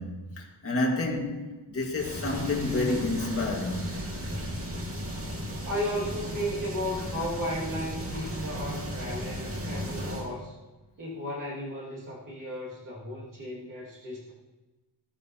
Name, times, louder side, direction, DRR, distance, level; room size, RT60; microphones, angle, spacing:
voice 1, 0.0-4.0, left 2 dB, 35° left, 1.8 m, -29 dB
sound 1, 2.0-10.3, equal, 35° right, 2.1 m, -35 dB
voice 2, 5.6-10.6 11.0-14.3, equal, 50° right, 2.2 m, -34 dB
15.0 x 14.5 x 2.9 m
wide cardioid pair, 165°, 42 cm